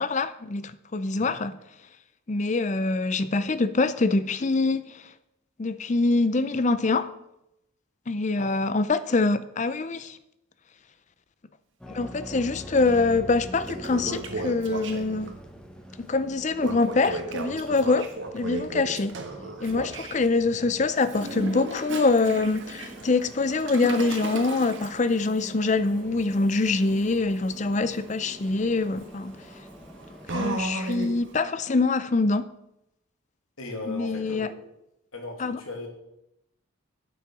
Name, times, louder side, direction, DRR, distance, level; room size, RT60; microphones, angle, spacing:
voice 1, 0.0-1.6 2.3-5.0 5.6-7.1 8.1-10.2 11.9-15.3 16.0-19.2 19.6-29.4 30.3-32.5 33.9-34.5 35.4-35.6, left 3 dB, 35° left, 0.5 m, -25 dB
sound 1, 11.8-30.8, equal, 5° left, 0.9 m, -45 dB
Toilet flush, 12.9-13.0 13.4-15.3 16.6-20.2 21.0-31.3, right 2 dB, 60° right, 1.4 m, -36 dB
voice 2, 33.6-34.5 35.1-35.9, left 2 dB, 85° left, 2.5 m, -37 dB
8.5 x 8.1 x 6.1 m
head